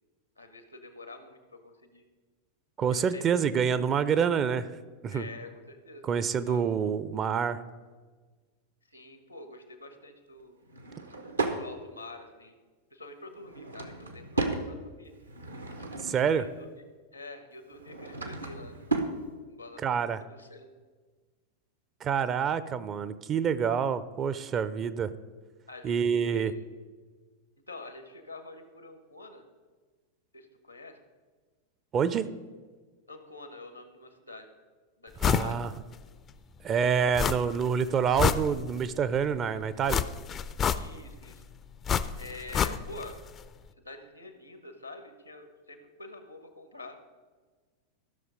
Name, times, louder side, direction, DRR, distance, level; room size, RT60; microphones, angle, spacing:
voice 1, 0.4-2.0 2.9-3.2 5.1-6.6 8.9-10.6 11.6-12.5 12.9-15.1 16.1-16.7 17.1-18.9 19.5-20.7 25.7-26.6 27.7-29.4 30.3-31.0 33.1-34.5 35.0-35.6 40.7-41.4 42.2-43.2 43.8-47.0, left 2 dB, 85° left, 7 dB, 1.2 m, -46 dB
voice 2, 2.8-4.7 5.0-5.3 6.0-7.6 16.0-16.5 19.8-20.2 22.0-25.1 25.8-26.5 31.9-32.3 35.2-35.7 36.6-40.0, right 7 dB, 30° right, 14 dB, 0.5 m, -27 dB
Drawer open or close / Wood, 10.7-11.6 13.3-14.7 15.2-16.3 17.7-19.2, right 3 dB, 80° right, 1.0 m, -34 dB
sound 1, 35.2-35.5 35.9-36.0 37.2-37.7 38.0-38.9 39.9-41.2 41.9-43.1 43.4-43.5, left 7 dB, 25° left, 0.4 m, -28 dB
14.0 x 6.3 x 5.1 m, 1.4 s
figure-of-eight pair, 90°, 0 cm